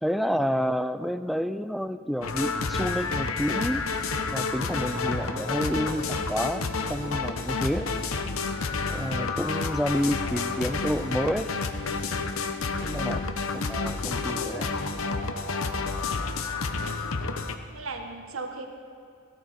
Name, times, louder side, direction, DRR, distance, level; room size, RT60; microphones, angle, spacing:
voice 1, 0.0-3.8 4.3-7.9 8.9-11.5 12.8-13.3 13.5-14.8, equal, ahead, 11 dB, 0.4 m, -29 dB
sound 1, 2.2-17.6, left 4 dB, 80° left, 0.9 m, -30 dB
voice 2, 16.5-16.8 17.7-18.7, right 3 dB, 75° right, 4 dB, 1.3 m, -37 dB
17.5 x 13.5 x 4.2 m, 2.5 s
head